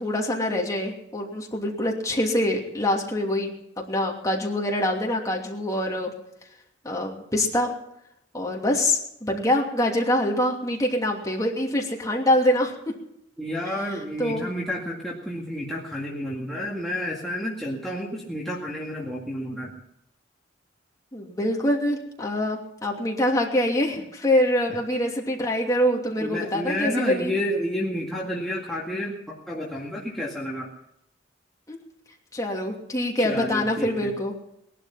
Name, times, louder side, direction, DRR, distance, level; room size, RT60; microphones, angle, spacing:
voice 1, 0.0-3.5 3.9-6.1 6.8-7.7 8.3-12.7 13.6-14.5 21.1-27.3 31.7-31.8 32.3-34.3, left 1 dB, 20° left, -1 dB, 2.8 m, -25 dB
voice 2, 13.4-19.7 26.2-30.7 33.2-34.1, equal, ahead, -5 dB, 2.1 m, -30 dB
20.0 x 12.0 x 5.8 m, 0.77 s
head